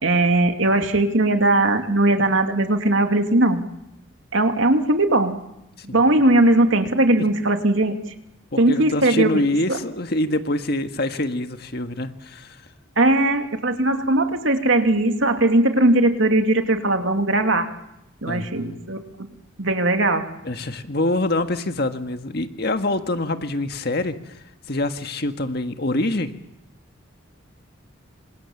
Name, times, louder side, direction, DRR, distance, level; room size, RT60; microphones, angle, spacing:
voice 1, 0.0-3.6 4.3-5.4 5.9-7.9 8.6-9.3 9.7-9.8 13.0-17.7 18.2-19.3 19.6-20.2, right 2 dB, 65° right, 6 dB, 2.7 m, -19 dB
voice 2, 8.5-12.6 18.3-18.7 20.4-24.3 24.7-26.3, left 1 dB, 50° left, 7 dB, 1.7 m, -25 dB
27.5 x 26.5 x 7.3 m, 0.84 s
head